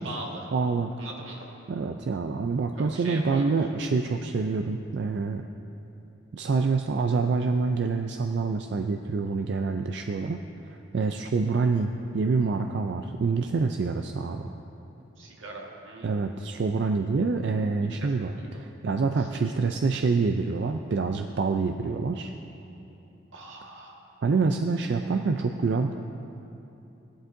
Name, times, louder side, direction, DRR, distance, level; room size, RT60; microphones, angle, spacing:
voice 1, 0.0-0.5 1.0-1.5 2.8-3.6 15.2-16.6 17.9-18.6 19.2-19.3 23.3-24.0, right 2 dB, 90° right, -1 dB, 1.6 m, -41 dB
voice 2, 0.5-0.9 1.7-5.5 6.3-10.4 10.7-14.6 16.0-22.3 24.2-25.9, right 4 dB, 60° right, 5 dB, 0.4 m, -26 dB
16.5 x 11.0 x 2.6 m, 3.0 s
head